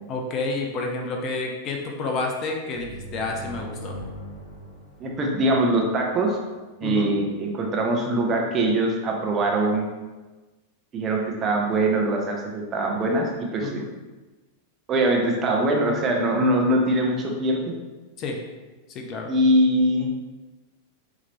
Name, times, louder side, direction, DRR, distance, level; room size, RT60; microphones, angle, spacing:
voice 1, 0.1-4.0 6.8-7.2 13.6-13.9 18.2-18.4 18.9-19.3, left 3 dB, 35° left, 1 dB, 0.7 m, -29 dB
sound 1, 2.7-6.3, right 1 dB, 75° left, 1.3 m, -40 dB
voice 2, 5.0-6.4 6.8-9.9 10.9-13.8 14.9-17.7 19.3-20.1, right 1 dB, 25° right, 0 dB, 0.8 m, -22 dB
5.8 x 2.9 x 3.0 m, 1.2 s
figure-of-eight pair, 90°, 0 cm